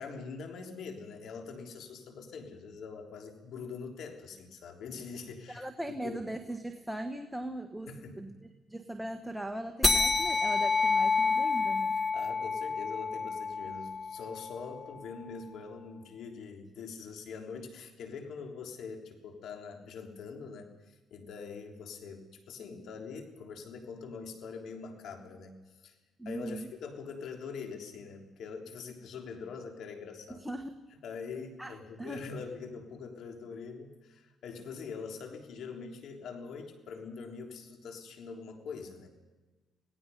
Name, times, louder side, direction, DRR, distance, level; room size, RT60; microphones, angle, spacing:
voice 1, 0.0-5.6 6.0-6.2 7.9-8.2 12.1-25.6 25.8-26.0 26.2-30.4 31.0-39.1, left 5 dB, 75° left, 3 dB, 3.4 m, -43 dB
voice 2, 5.5-11.9 26.2-26.7 30.3-30.8 31.6-32.2, right 1 dB, 5° right, 6 dB, 1.3 m, -39 dB
sound 1, 9.8-14.7, left 4 dB, 25° left, 1.7 m, -29 dB
27.5 x 18.0 x 5.5 m, 1.2 s
cardioid pair, 90°, 0 cm